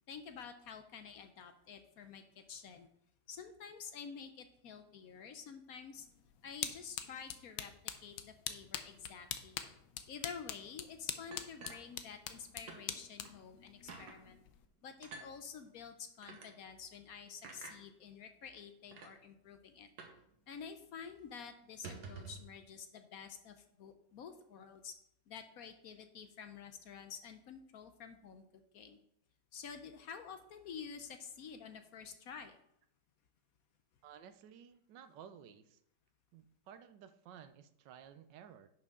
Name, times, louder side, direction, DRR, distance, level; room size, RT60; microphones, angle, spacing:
voice 1, 0.1-2.9 3.3-6.1 6.4-7.7 8.0-9.6 10.1-14.4 14.8-19.9 20.5-24.9 25.3-29.0 29.5-32.6, left 6 dB, 65° left, 8 dB, 1.0 m, -50 dB
sound 1, 5.9-14.7, left 10 dB, 90° left, 1.4 m, -45 dB
sound 2, 11.3-12.4 12.7-12.8 13.2-13.4 13.9-14.2 15.0-15.3 16.2-16.5 17.4-17.8 18.5-18.6 18.9-19.1 20.0-20.2 20.5-20.6 20.9-21.1 21.7-22.5, right 4 dB, 65° right, 1.7 m, -49 dB
voice 2, 34.0-35.8 36.3-38.7, right 8 dB, 80° right, 11 dB, 1.3 m, -55 dB
10.5 x 6.1 x 3.7 m, 0.74 s
omnidirectional pair, 1.9 m